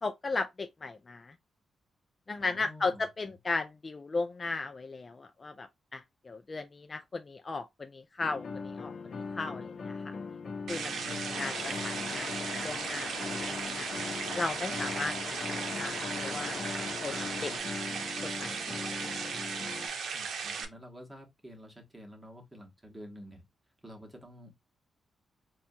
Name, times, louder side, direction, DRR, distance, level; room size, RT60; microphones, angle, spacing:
voice 1, 0.0-1.3 2.3-8.9 9.3-10.1 10.7-10.9 11.4-11.5 11.8-12.3 12.6-13.9 14.3-16.6 17.0-17.5 18.2-19.0, left 3 dB, 30° left, 0.3 m, -36 dB
voice 2, 2.3-3.3 10.9-11.9 17.0-17.6 20.1-23.4 23.8-24.5, equal, 10° right, 1.1 m, -50 dB
sound 1, 8.2-19.9, left 4 dB, 50° left, 0.7 m, -41 dB
sound 2, 10.7-20.6, right 5 dB, 80° right, 0.7 m, -36 dB
sound 3, 11.3-17.6, left 7 dB, 85° left, 0.7 m, -42 dB
4.2 x 2.3 x 2.6 m
wide cardioid pair, 130°, 0 cm